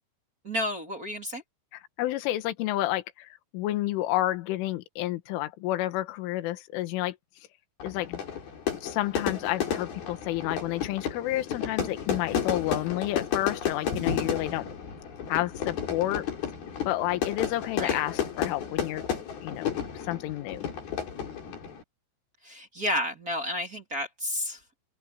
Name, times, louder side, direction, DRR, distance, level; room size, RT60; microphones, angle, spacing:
voice 1, 0.4-1.4 17.8-18.0 22.4-24.6, left 1 dB, 25° right, 2.0 m, -31 dB
voice 2, 1.7-7.2 7.8-8.2 8.8-14.7 15.3-16.3 16.9-19.1 19.4-20.7, left 15 dB, 75° left, 3.8 m, -30 dB
Fire / Fireworks, 7.8-21.8, left 8 dB, 50° left, 5.8 m, -32 dB
open air
omnidirectional pair, 6.0 m